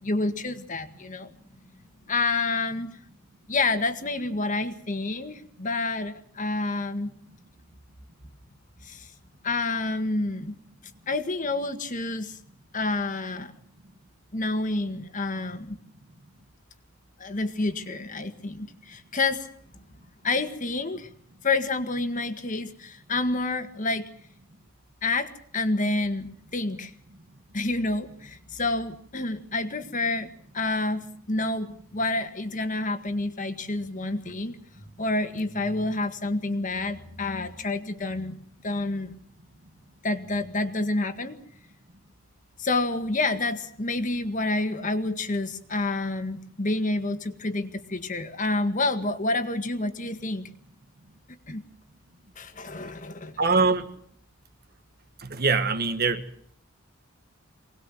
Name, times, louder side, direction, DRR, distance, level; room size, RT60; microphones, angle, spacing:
voice 1, 0.0-1.3 2.1-2.9 3.5-7.1 8.8-9.1 9.4-10.5 11.1-12.4 12.7-13.5 14.3-15.8 17.2-19.5 20.2-21.1 21.4-24.1 25.0-26.9 27.5-34.6 35.0-38.4 38.6-39.1 40.0-41.4 42.6-50.5 51.5-51.6 52.4-53.3, left 2 dB, 35° left, 1.7 m, -28 dB
voice 2, 53.4-53.9 55.2-56.2, right 4 dB, 45° right, 1.6 m, -23 dB
24.0 x 19.0 x 7.7 m
head